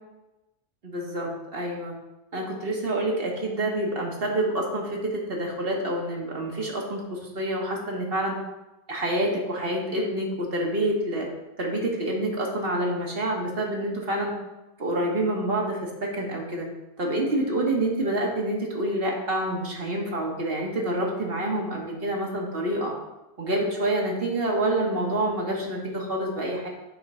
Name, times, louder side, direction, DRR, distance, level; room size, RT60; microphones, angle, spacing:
voice 1, 0.8-1.9 2.3-8.4 8.9-11.3 11.6-14.3 14.8-16.7 17.0-22.9 23.4-26.7, right 1 dB, 60° right, -1 dB, 1.5 m, -27 dB
7.7 x 3.6 x 5.5 m, 1.0 s
omnidirectional pair, 1.1 m